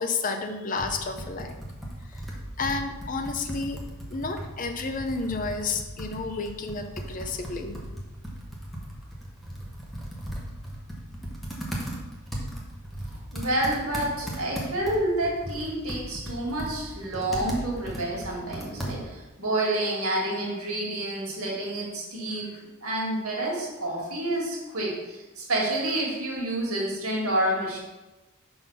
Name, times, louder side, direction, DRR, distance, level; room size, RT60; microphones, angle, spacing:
voice 1, 0.0-1.5 2.1-2.2 2.6-3.8 4.1-7.8, left 4 dB, 35° left, 6 dB, 0.5 m, -31 dB
Computer keyboard, 0.8-19.3, right 1 dB, ahead, 0.9 m, -37 dB
voice 2, 13.3-27.8, right 1 dB, 75° right, -2 dB, 2.0 m, -29 dB
5.7 x 3.9 x 5.6 m, 1.1 s
head